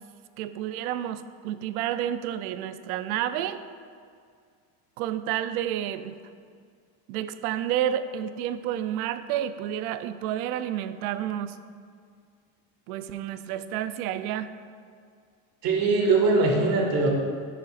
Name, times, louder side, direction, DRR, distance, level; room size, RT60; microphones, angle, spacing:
voice 1, 0.4-3.6 5.0-6.2 7.1-11.6 12.9-14.5, right 11 dB, 80° right, 12 dB, 0.6 m, -30 dB
voice 2, 15.6-17.1, right 3 dB, 50° right, 0 dB, 1.8 m, -21 dB
11.0 x 6.4 x 2.5 m, 2.2 s
supercardioid pair, 105°, 44 cm